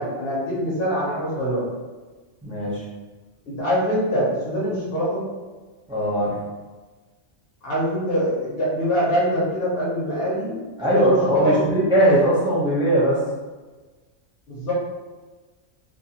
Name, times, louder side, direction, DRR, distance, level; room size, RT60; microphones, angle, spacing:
voice 1, 0.0-1.7 3.5-5.2 7.6-10.6 10.9-11.6 14.5-14.7, equal, 55° left, -6 dB, 1.0 m, -23 dB
voice 2, 2.4-2.8 5.9-6.3 10.8-13.2, equal, 5° right, -8 dB, 0.5 m, -20 dB
2.6 x 2.3 x 2.8 m, 1.3 s
omnidirectional pair, 1.2 m